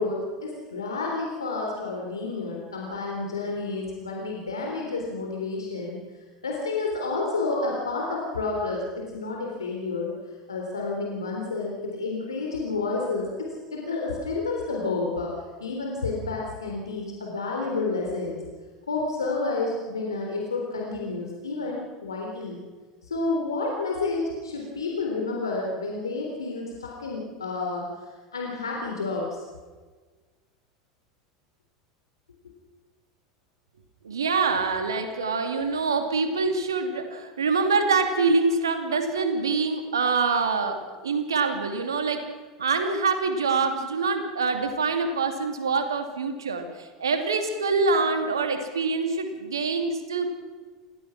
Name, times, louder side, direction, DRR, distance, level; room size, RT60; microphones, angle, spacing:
voice 1, 0.0-6.0 6.4-10.1 10.5-15.3 15.6-18.4 18.9-22.6 23.0-27.9 28.3-29.3, left 3 dB, 80° left, -1 dB, 3.6 m, -30 dB
voice 2, 34.0-42.2 42.6-50.3, right 4 dB, 80° right, 6 dB, 2.7 m, -25 dB
27.5 x 16.0 x 6.1 m, 1.4 s
figure-of-eight pair, 80°, 2 cm